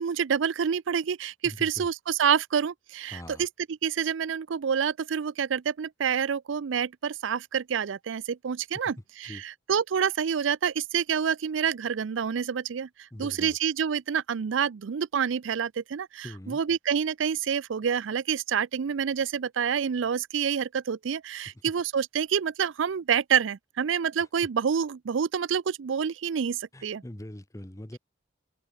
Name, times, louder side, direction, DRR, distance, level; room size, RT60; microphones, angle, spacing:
voice 1, 0.0-3.5 3.8-27.0, right 7 dB, 80° right, 0.4 m, -28 dB
voice 2, 1.4-1.9 3.1-3.5 9.2-9.4 13.1-13.6 16.2-16.6 26.7-28.0, left 1 dB, 15° left, 0.9 m, -42 dB
open air
head